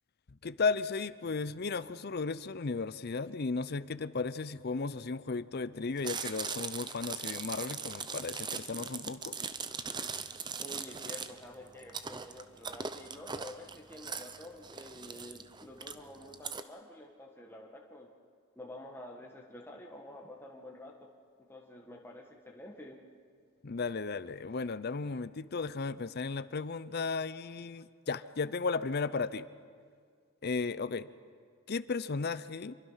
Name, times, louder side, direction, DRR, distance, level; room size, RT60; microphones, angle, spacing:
voice 1, 0.4-9.4 23.6-29.5 30.4-31.1 31.7-32.8, left 4 dB, 45° left, 16 dB, 0.6 m, -35 dB
Chewing mastication, 6.0-16.6, right 5 dB, 20° right, 0.6 m, -40 dB
voice 2, 10.6-18.1 18.5-21.1 21.5-23.0, left 1 dB, 10° left, -1 dB, 1.5 m, -49 dB
26.5 x 23.0 x 5.7 m, 2.1 s
head